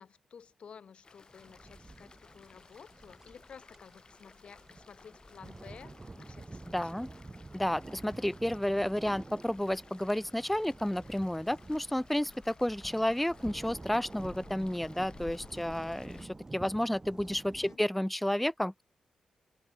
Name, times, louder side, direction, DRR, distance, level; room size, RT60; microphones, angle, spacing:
voice 1, 0.0-7.1 17.4-17.8, left 6 dB, 65° left, 1.5 m, -53 dB
sound 1, 1.0-16.3, left 4 dB, 45° left, 4.4 m, -56 dB
sound 2, 1.3-17.8, right 2 dB, 25° right, 1.3 m, -49 dB
voice 2, 6.7-7.1 7.5-18.8, left 1 dB, 5° left, 0.6 m, -31 dB
open air
cardioid pair, 55°, 2 cm